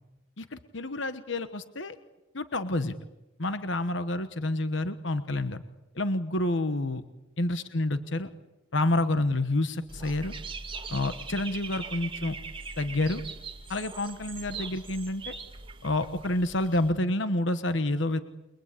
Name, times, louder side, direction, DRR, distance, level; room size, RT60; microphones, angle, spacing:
voice 1, 0.4-2.0 2.3-3.0 3.4-5.6 5.9-7.0 7.4-8.3 8.7-10.3 10.9-12.4 12.8-13.2 13.7-15.3 15.8-18.2, left 2 dB, 60° left, 10 dB, 1.2 m, -28 dB
Dog / Bird, 9.9-16.9, right 4 dB, 25° right, 2.3 m, -41 dB
29.5 x 23.0 x 8.4 m, 1.0 s
head